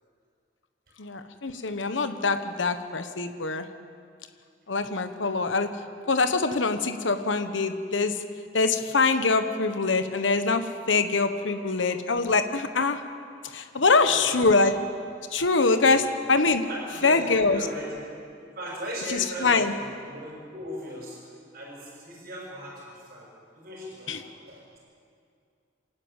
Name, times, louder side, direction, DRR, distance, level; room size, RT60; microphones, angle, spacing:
voice 1, 1.0-3.7 4.7-5.7 6.1-8.1 8.5-13.0 13.5-14.7 15.3-16.6 17.0-17.6 19.1-19.7 24.1-24.2, left 3 dB, 85° left, 8 dB, 1.2 m, -24 dB
voice 2, 11.2-11.6 13.7-14.5 15.8-16.1 16.6-18.0 18.4-21.2 21.5-23.3 23.5-24.8, equal, 55° right, -5 dB, 6.2 m, -38 dB
27.0 x 12.0 x 8.9 m, 2.3 s
head